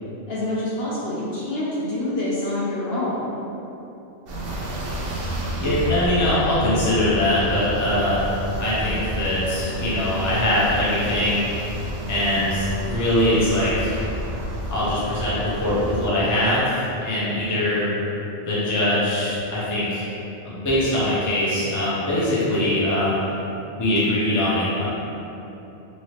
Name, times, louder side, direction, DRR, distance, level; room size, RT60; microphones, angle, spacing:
voice 1, 0.3-3.4, left 1 dB, 60° left, -8 dB, 0.7 m, -26 dB
sound 1, 4.3-16.1, right 1 dB, 60° right, 0.7 m, -30 dB
voice 2, 5.6-11.5 12.1-14.0 14.7-17.9 18.4-20.1 20.4-23.2 23.8-24.8, left 1 dB, 20° left, -9 dB, 0.6 m, -22 dB
3.0 x 2.8 x 3.1 m, 3.0 s
omnidirectional pair, 1.3 m